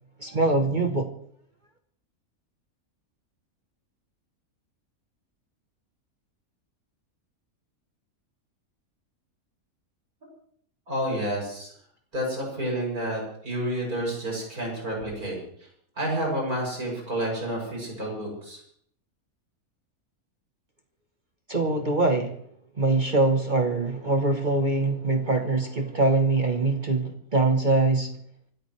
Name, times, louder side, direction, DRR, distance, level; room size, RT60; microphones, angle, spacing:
voice 1, 0.2-1.1 21.5-22.4 22.8-28.1, right 2 dB, 35° right, 1.2 m, -23 dB
voice 2, 10.9-11.7 12.1-15.4 16.0-18.6, right 1 dB, 90° right, 7.6 m, -29 dB
26.0 x 14.0 x 3.3 m
omnidirectional pair, 1.5 m